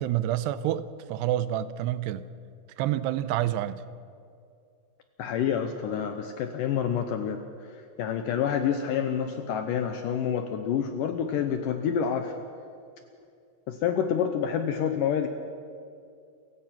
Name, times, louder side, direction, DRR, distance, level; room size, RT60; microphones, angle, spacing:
voice 1, 0.0-2.2 2.8-3.8, right 12 dB, 85° right, 14 dB, 2.8 m, -28 dB
voice 2, 5.2-12.3 13.7-15.3, left 8 dB, 75° left, 7 dB, 2.0 m, -28 dB
28.0 x 16.0 x 6.0 m, 2.4 s
omnidirectional pair, 4.8 m